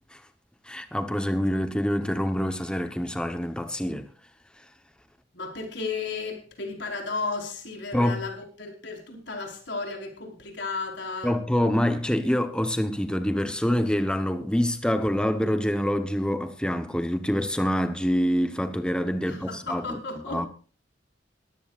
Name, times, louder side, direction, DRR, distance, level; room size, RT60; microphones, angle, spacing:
voice 1, 0.6-4.1 7.9-8.2 11.2-20.0 20.3-20.5, equal, 5° left, 1.0 m, -26 dB
voice 2, 5.3-11.3 19.2-20.4, left 4 dB, 80° left, 4.7 m, -34 dB
21.5 x 15.0 x 2.5 m
head